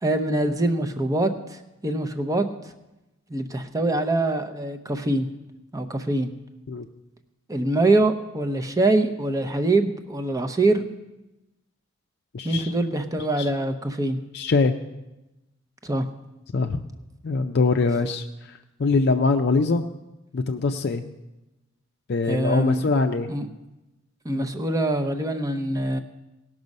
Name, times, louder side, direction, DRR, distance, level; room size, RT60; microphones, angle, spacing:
voice 1, 0.0-2.7 3.3-5.3 5.7-6.3 7.5-10.8 12.4-14.2 15.8-16.1 22.3-22.9 23.3-23.5 24.2-26.0, right 2 dB, 15° right, 7 dB, 0.6 m, -24 dB
voice 2, 12.3-12.7 13.4-13.5 14.3-14.7 16.5-16.8 17.2-19.8 20.3-21.0 22.1-23.3, left 3 dB, 55° left, 5 dB, 0.5 m, -23 dB
18.0 x 6.1 x 5.3 m, 1.0 s
head